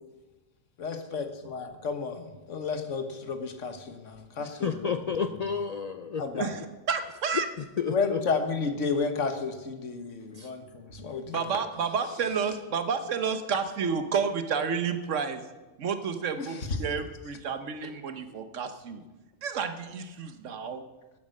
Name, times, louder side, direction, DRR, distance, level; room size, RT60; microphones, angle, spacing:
voice 1, 0.8-4.9 6.2-6.5 7.9-11.4 16.4-16.8, left 4 dB, 80° left, 7 dB, 1.6 m, -32 dB
voice 2, 4.4-6.5 7.3-8.2 10.3-10.5, left 6 dB, 60° left, 9 dB, 0.4 m, -31 dB
voice 3, 6.9-7.5 11.3-15.4 15.8-19.0 19.4-20.8, right 6 dB, 85° right, 9 dB, 1.3 m, -30 dB
13.0 x 8.9 x 6.5 m, 1.2 s
omnidirectional pair, 1.2 m